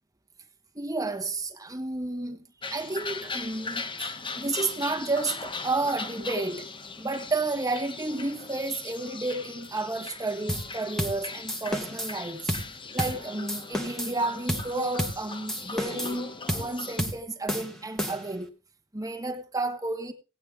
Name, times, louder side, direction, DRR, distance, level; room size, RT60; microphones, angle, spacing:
voice 1, 0.7-6.7 7.0-12.5 12.9-18.5 18.9-20.1, right 2 dB, 15° right, 1.5 m, -31 dB
sound 1, 2.6-17.0, left 4 dB, 25° left, 0.9 m, -39 dB
sound 2, 10.5-10.7 11.0-11.2 11.5-12.1 12.5-12.7 13.0-13.2 13.5-14.2 14.5-14.7 15.0-15.2 15.5-16.2 16.5-16.7 17.0-17.2 17.5-18.4, equal, ahead, 1.3 m, -31 dB
17.0 x 8.7 x 3.5 m
head